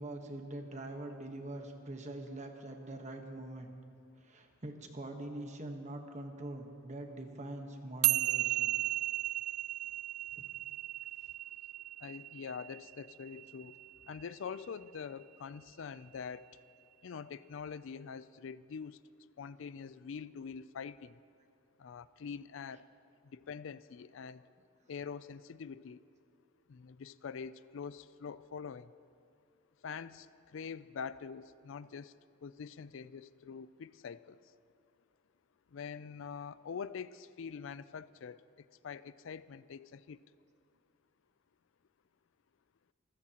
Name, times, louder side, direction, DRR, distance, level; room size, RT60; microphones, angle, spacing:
voice 1, 0.0-3.7 4.2-8.7 10.3-10.5, right 1 dB, 35° right, 4 dB, 1.3 m, -44 dB
sound 1, 8.0-14.6, right 16 dB, 85° right, 0.4 m, -35 dB
voice 2, 12.0-13.7 14.1-16.5 17.0-19.0 19.4-21.2 21.8-22.8 23.3-24.4 24.9-26.0 26.7-28.9 29.8-30.3 30.5-32.1 32.4-34.4 35.7-38.4 38.8-40.2, left 6 dB, 65° left, 16 dB, 0.4 m, -44 dB
26.0 x 14.5 x 2.9 m, 2.4 s
head